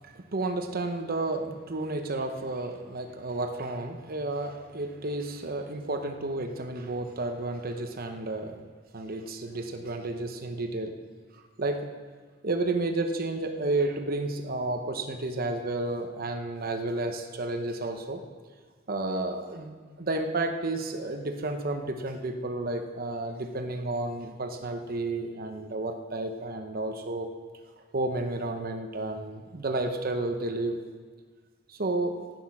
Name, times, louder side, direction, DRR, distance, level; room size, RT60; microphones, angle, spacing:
voice 1, 0.0-8.6 8.9-10.9 11.3-11.9 12.4-18.2 18.9-27.3 27.9-30.8 31.7-32.1, right 2 dB, 50° right, 5 dB, 0.9 m, -31 dB
11.5 x 9.2 x 6.1 m, 1.5 s
head